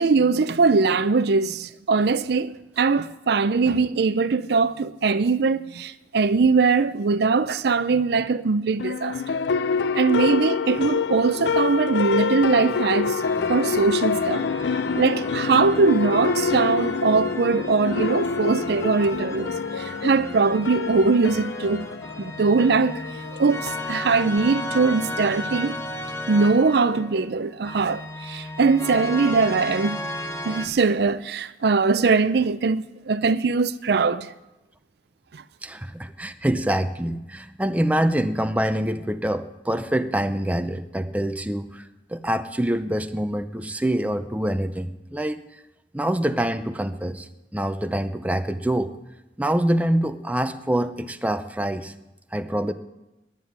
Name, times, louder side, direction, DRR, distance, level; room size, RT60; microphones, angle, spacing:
voice 1, 0.0-9.4 9.9-13.2 13.5-14.4 14.9-21.8 22.2-23.0 23.3-25.8 26.3-30.0 30.4-34.3 35.3-35.4, right 4 dB, 65° right, 0.5 m, -21 dB
sound 1, 8.8-24.4, left 5 dB, 75° left, 0.4 m, -27 dB
sound 2, 13.2-30.7, left 1 dB, 15° left, 1.0 m, -35 dB
voice 2, 35.6-45.4 45.9-48.9 49.4-51.9 52.3-52.7, right 1 dB, 10° right, 0.6 m, -25 dB
10.5 x 9.5 x 9.4 m
head